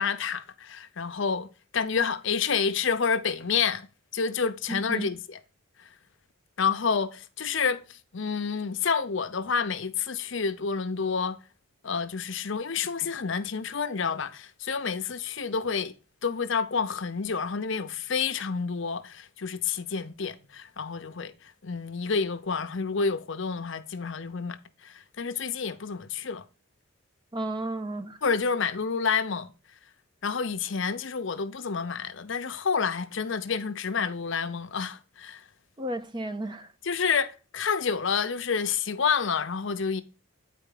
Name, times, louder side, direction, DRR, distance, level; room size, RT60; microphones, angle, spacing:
voice 1, 0.0-3.9 4.1-5.4 5.8-5.9 6.6-11.4 11.8-15.9 16.2-26.4 28.2-29.5 30.2-35.4 36.8-40.0, left 5 dB, 60° left, 0.7 m, -29 dB
voice 2, 4.7-5.1 27.3-28.2 35.8-36.7, right 1 dB, 20° right, 0.5 m, -33 dB
9.2 x 4.6 x 3.7 m
head